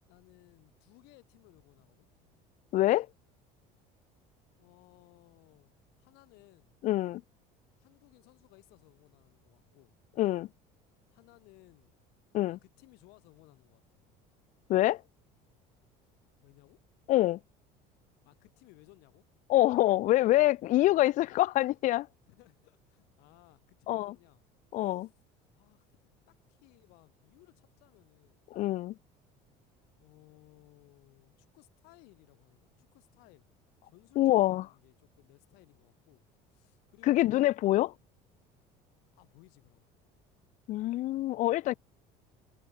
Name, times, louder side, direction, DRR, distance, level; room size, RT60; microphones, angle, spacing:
voice 1, 0.1-2.1 4.5-5.7 6.0-6.8 7.8-9.9 11.1-12.0 12.5-14.1 16.4-16.8 17.1-17.3 18.2-19.2 20.7-21.3 22.3-24.4 24.8-25.1 25.5-25.9 26.3-28.5 30.0-33.5 33.8-38.0 39.1-39.9, left 25 dB, 75° left, 7.5 m, -61 dB
voice 2, 2.7-3.1 6.8-7.2 10.2-10.5 12.3-12.6 14.7-15.0 17.1-17.4 19.5-22.1 23.9-24.1 24.7-25.1 28.5-28.9 34.2-34.6 37.0-37.9 40.7-41.7, left 16 dB, 50° left, 0.6 m, -25 dB
cardioid pair, 135°, 17 cm